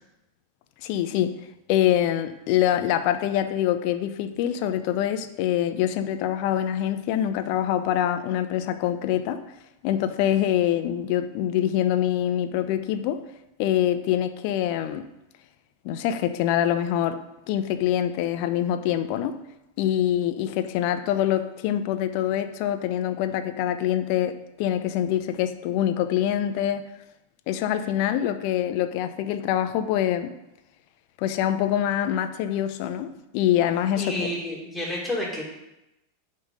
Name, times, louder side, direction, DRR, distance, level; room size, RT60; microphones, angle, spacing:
voice 1, 0.8-1.3 1.7-9.4 9.8-13.2 13.6-15.1 15.8-17.2 17.5-19.4 19.8-26.9 27.5-30.3 31.2-34.3, left 11 dB, 55° left, 10 dB, 0.7 m, -25 dB
voice 2, 33.9-35.4, left 1 dB, 5° left, -5 dB, 3.3 m, -29 dB
7.9 x 5.4 x 5.3 m, 0.92 s
hypercardioid pair, 115°, 0 cm